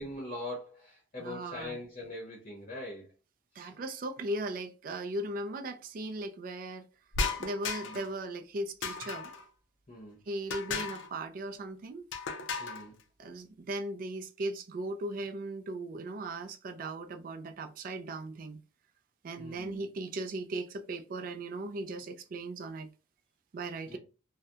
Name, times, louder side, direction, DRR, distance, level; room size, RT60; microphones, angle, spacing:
voice 1, 0.0-3.1 3.5-3.7 7.8-8.0 9.9-10.2 12.6-13.0 19.4-19.8 23.9-24.0, left 1 dB, 35° left, 0.7 m, -42 dB
voice 2, 1.2-1.8 3.6-6.8 7.4-9.3 10.3-12.0 13.2-18.6 19.2-22.9 23.5-24.0, right 2 dB, 45° right, 0.3 m, -38 dB
sound 1, 7.1-8.1 8.8-9.4 10.5-11.1 12.1-12.8, left 4 dB, 70° left, 0.4 m, -35 dB
2.7 x 2.1 x 2.3 m
head